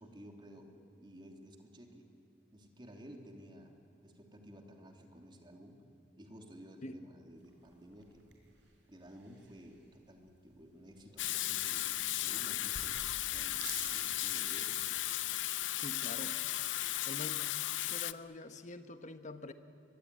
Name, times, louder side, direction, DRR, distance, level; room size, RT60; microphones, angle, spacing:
voice 1, 0.0-2.1 2.5-3.7 4.0-5.8 6.2-8.3 8.9-14.8, equal, 25° right, 3 dB, 2.9 m, -54 dB
sound 1, 7.4-15.6, right 5 dB, 70° right, 5.1 m, -52 dB
Water tap faucet / Sink (filling or washing), 11.2-18.1, left 14 dB, 75° left, 0.6 m, -35 dB
voice 2, 15.7-16.4 17.0-17.5 17.8-19.5, left 2 dB, 40° left, 9 dB, 1.3 m, -46 dB
23.5 x 23.0 x 9.8 m, 2.4 s
head